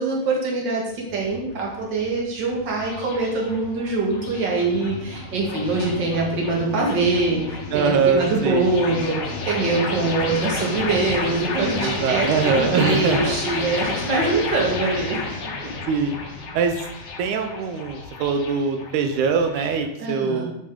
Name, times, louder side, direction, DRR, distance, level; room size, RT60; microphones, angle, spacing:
voice 1, 0.0-15.4 20.0-20.5, right 3 dB, 45° right, -2 dB, 2.2 m, -23 dB
sound 1, 0.9-19.9, left 3 dB, 60° left, 2.1 m, -31 dB
voice 2, 7.7-8.7 11.8-13.4 15.9-16.2 16.5-16.8 17.2-20.5, right 5 dB, 90° right, 6 dB, 2.1 m, -22 dB
7.5 x 6.6 x 3.7 m, 0.79 s
omnidirectional pair, 3.3 m